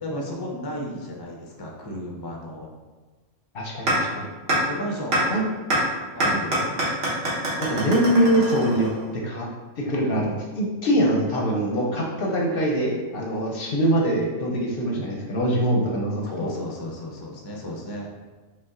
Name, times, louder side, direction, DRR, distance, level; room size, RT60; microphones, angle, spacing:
voice 1, 0.0-2.7 4.7-5.2 5.8-6.8 16.2-18.1, equal, 30° left, -1 dB, 0.5 m, -34 dB
voice 2, 3.5-4.3 5.3-5.4 7.6-9.5 9.8-16.5, right 1 dB, 55° left, -1 dB, 0.8 m, -23 dB
sound 1, 3.9-4.0 4.5-4.6 5.1-5.2 5.7-5.8 6.2-9.1, right 1 dB, 55° right, 1.4 m, -24 dB
5.3 x 2.3 x 3.7 m, 1.3 s
omnidirectional pair, 1.3 m